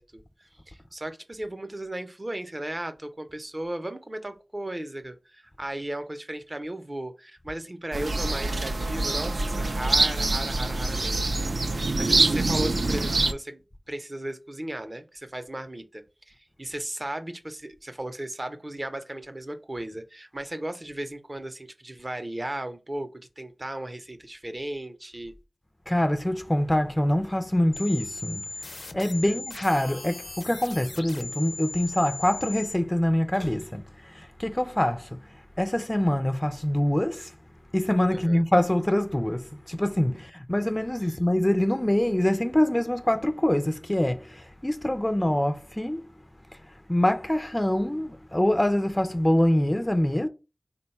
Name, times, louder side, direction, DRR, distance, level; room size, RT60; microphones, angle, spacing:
voice 1, 0.0-11.3 11.6-13.6 13.9-25.3 29.2-29.4 38.1-38.4, right 1 dB, 35° right, 0.6 m, -36 dB
sound 1, 7.9-13.3, right 2 dB, 85° right, 0.4 m, -25 dB
voice 2, 25.9-28.4 28.9-35.2 35.6-37.3 37.7-46.0 46.9-50.3, left 1 dB, 15° left, 0.3 m, -25 dB
sound 2, 27.7-32.7, left 2 dB, 80° left, 0.5 m, -38 dB
3.8 x 2.2 x 4.1 m
wide cardioid pair, 70°, 0 cm